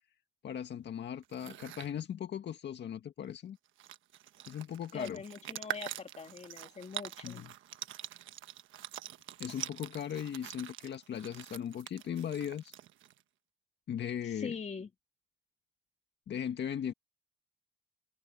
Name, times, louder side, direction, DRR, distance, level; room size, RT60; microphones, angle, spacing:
voice 1, 0.4-3.6 4.5-5.2 7.2-7.5 9.4-12.7 13.9-14.6 16.3-16.9, left 9 dB, 60° left, 1.9 m, -38 dB
sound 1, 1.2-1.9 3.3-3.4 3.7-13.2, right 12 dB, 80° right, 1.2 m, -45 dB
voice 2, 4.9-7.5 14.2-14.9, left 5 dB, 35° left, 2.5 m, -42 dB
cardioid pair, 90°, 20 cm